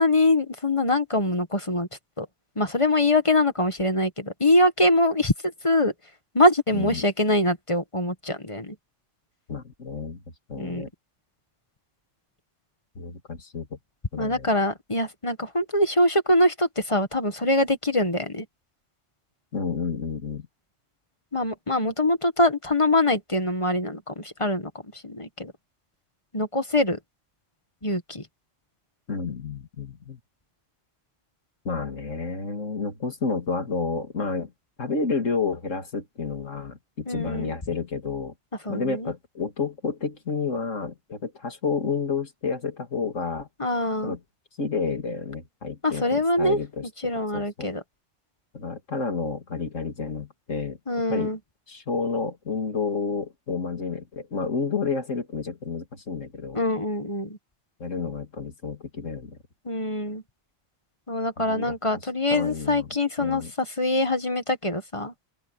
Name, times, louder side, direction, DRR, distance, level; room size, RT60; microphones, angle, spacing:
voice 1, 0.0-1.9 2.2-2.3 2.6-5.9 6.3-8.7 10.6-10.8 14.2-18.4 21.3-24.7 25.0-25.5 26.3-27.0 27.8-28.2 37.1-37.5 38.6-39.1 43.6-44.1 45.8-46.6 47.0-47.8 50.9-51.4 56.5-57.4 59.6-60.2 61.1-65.1, left 1 dB, 25° left, 1.6 m, -23 dB
voice 2, 6.7-7.0 9.5-10.2 10.5-10.9 13.0-13.8 14.1-14.5 19.5-20.5 29.1-30.2 31.6-34.5 34.8-38.3 38.7-43.5 44.0-44.2 44.6-46.9 47.3-47.7 48.5-50.8 51.1-51.3 51.7-56.6 57.8-59.4 61.4-61.7 62.3-62.9 63.2-63.5, left 4 dB, 90° left, 2.8 m, -30 dB
open air
omnidirectional pair, 1.3 m